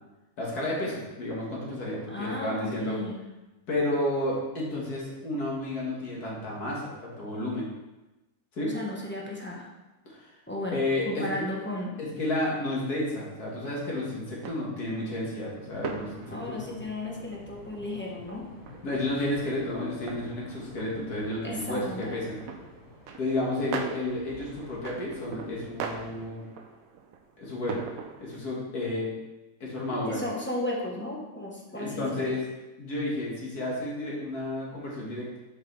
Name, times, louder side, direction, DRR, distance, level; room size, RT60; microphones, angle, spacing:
voice 1, 0.4-3.0 3.7-7.7 8.5-8.8 10.1-10.3 10.7-11.5 12.0-16.8 18.8-22.4 23.2-26.4 27.4-27.8 28.2-29.1 29.6-30.2 31.7-32.4 32.8-35.4, left 1 dB, 70° left, -4 dB, 2.3 m, -31 dB
voice 2, 2.1-3.2 8.7-9.7 10.5-12.0 16.3-18.5 21.4-22.2 30.1-32.3, left 1 dB, 10° left, -3 dB, 1.0 m, -34 dB
sound 1, 13.6-28.4, right 6 dB, 65° right, 1.0 m, -42 dB
sound 2, 15.7-26.2, left 3 dB, 55° left, 1.4 m, -50 dB
7.8 x 5.4 x 3.4 m, 1.1 s
omnidirectional pair, 1.7 m